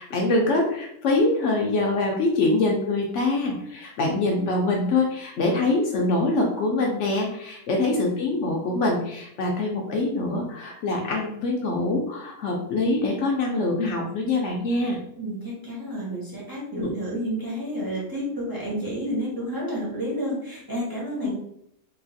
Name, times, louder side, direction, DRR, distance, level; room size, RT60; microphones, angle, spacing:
voice 1, 0.0-15.0 16.8-16.9 21.2-21.3, left 2 dB, 70° left, 0 dB, 0.7 m, -24 dB
voice 2, 7.8-8.1 15.1-21.3, equal, 25° right, -6 dB, 0.5 m, -30 dB
3.0 x 2.4 x 2.6 m, 0.74 s
omnidirectional pair, 1.6 m